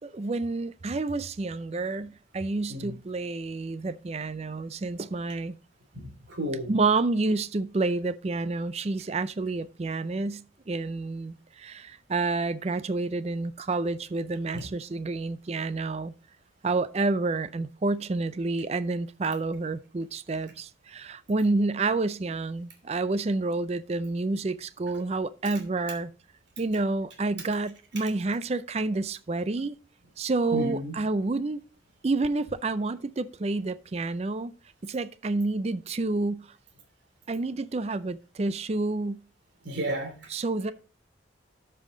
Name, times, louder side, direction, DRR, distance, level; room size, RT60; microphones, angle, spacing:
voice 1, 0.0-5.6 6.7-16.1 16.6-26.1 26.6-29.7 30.2-31.6 32.0-34.5 34.8-36.5 37.3-39.2 40.3-40.7, right 3 dB, 35° right, 0.4 m, -29 dB
voice 2, 5.9-6.7 14.5-14.6 30.5-31.0 39.6-40.3, equal, 65° right, 2.8 m, -33 dB
12.0 x 5.7 x 3.8 m
head